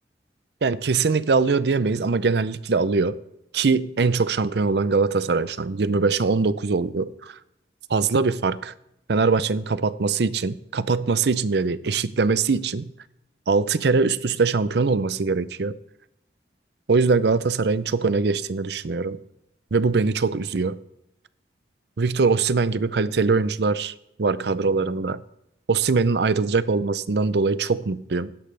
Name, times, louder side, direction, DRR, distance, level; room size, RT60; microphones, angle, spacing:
voice 1, 0.6-3.2 3.5-7.4 7.9-8.7 9.1-12.9 13.5-15.8 16.9-19.2 19.7-20.8 22.0-23.9 24.2-25.2 25.7-28.3, right 4 dB, 70° right, 0.5 m, -22 dB
16.5 x 10.5 x 3.3 m
head